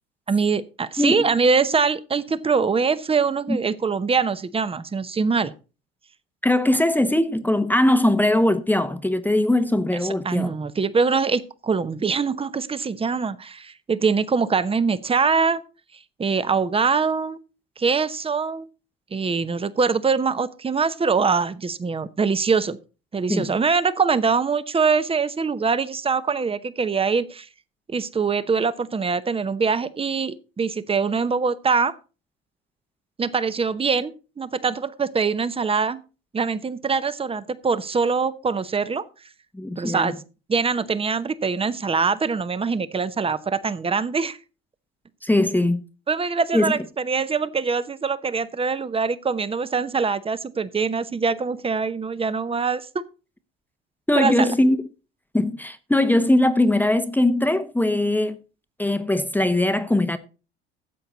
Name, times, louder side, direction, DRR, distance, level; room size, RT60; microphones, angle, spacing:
voice 1, 0.3-5.5 10.2-15.6 16.2-17.4 17.8-18.7 19.1-22.8 23.1-27.5 27.9-32.0 33.2-36.0 36.3-39.0 39.8-40.1 40.5-44.4 46.1-52.8 54.2-54.5, right 5 dB, 20° right, 0.9 m, -23 dB
voice 2, 1.0-1.3 3.5-3.6 6.4-10.5 23.3-23.5 39.5-40.2 45.2-45.8 46.5-46.8 54.1-54.8 55.3-58.4 58.8-60.2, left 1 dB, 5° left, 1.0 m, -20 dB
13.0 x 7.9 x 4.0 m
hypercardioid pair, 70°, 29 cm